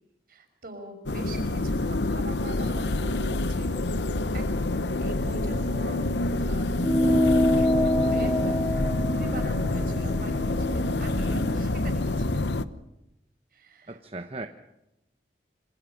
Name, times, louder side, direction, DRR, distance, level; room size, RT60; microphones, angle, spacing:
voice 1, 0.3-3.8 4.3-6.1 6.4-6.9 7.6-12.4 13.5-14.0, right 1 dB, 55° right, 5 dB, 5.7 m, -42 dB
sound 1, 1.1-12.7, left 2 dB, 85° left, 1.0 m, -27 dB
voice 2, 2.5-2.8 13.9-14.5, right 2 dB, 35° right, 7 dB, 1.0 m, -38 dB
sound 2, 6.8-11.6, left 1 dB, 20° left, 0.8 m, -26 dB
27.5 x 25.5 x 5.9 m, 0.90 s
head